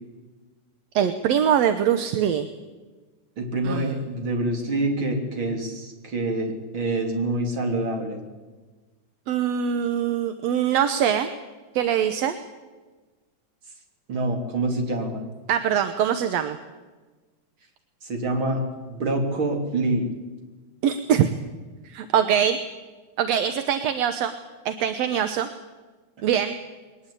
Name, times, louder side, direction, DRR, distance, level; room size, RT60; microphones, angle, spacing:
voice 1, 1.0-2.5 3.6-3.9 9.3-11.3 11.8-12.4 15.5-16.6 20.8-21.3 21.9-22.6 23.2-24.3 24.7-25.5 26.2-26.6, right 9 dB, 65° right, 9 dB, 1.9 m, -23 dB
voice 2, 3.4-8.2 14.1-15.2 18.0-18.6 18.9-20.1, right 2 dB, 40° right, 3 dB, 3.7 m, -26 dB
22.0 x 19.0 x 8.5 m, 1.3 s
omnidirectional pair, 3.5 m